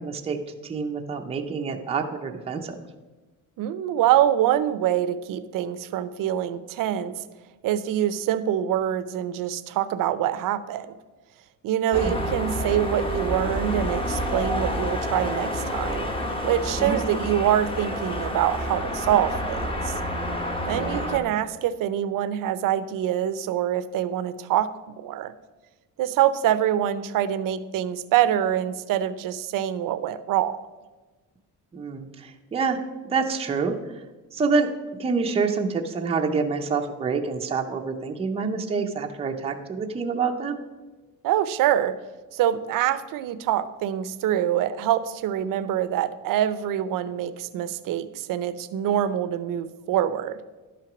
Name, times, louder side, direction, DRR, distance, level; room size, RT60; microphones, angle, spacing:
voice 1, 0.0-2.8 12.0-12.1 16.8-17.0 20.8-21.1 31.7-32.8 33.0-34.0 34.3-34.7 35.0-40.6, right 5 dB, 20° right, 3 dB, 0.6 m, -27 dB
voice 2, 3.6-7.2 7.6-11.0 11.6-16.1 16.4-19.9 20.6-25.3 26.0-30.6 41.2-42.0 42.3-50.4, right 11 dB, 75° right, 14 dB, 0.7 m, -25 dB
sound 1, 11.9-21.2, equal, 15° left, 1.0 m, -28 dB
11.5 x 5.9 x 6.0 m, 1.2 s
cardioid pair, 180°, 34 cm